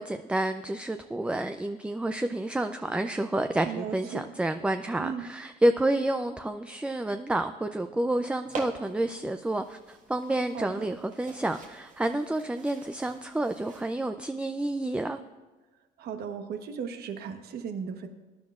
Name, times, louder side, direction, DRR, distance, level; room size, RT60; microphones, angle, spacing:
voice 1, 0.0-15.2, right 1 dB, 5° right, 8 dB, 0.4 m, -29 dB
voice 2, 3.6-4.3 5.0-5.3 10.5-10.9 16.0-18.1, right 7 dB, 65° right, 7 dB, 1.2 m, -36 dB
sound 1, 8.4-14.0, right 4 dB, 50° right, 1.7 m, -45 dB
20.0 x 10.5 x 2.4 m, 1.2 s
cardioid pair, 110°, 17 cm